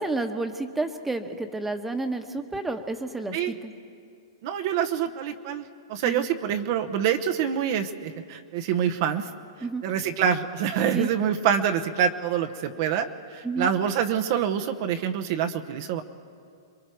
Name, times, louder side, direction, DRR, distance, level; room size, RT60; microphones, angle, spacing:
voice 1, 0.0-3.7 6.0-6.3 9.6-9.8 10.9-11.1 13.4-13.7, right 3 dB, 5° right, 6 dB, 1.2 m, -30 dB
voice 2, 4.4-9.3 9.8-16.0, right 8 dB, 50° right, 6 dB, 1.0 m, -26 dB
27.0 x 22.0 x 4.6 m, 2.3 s
hypercardioid pair, 130°, 2 cm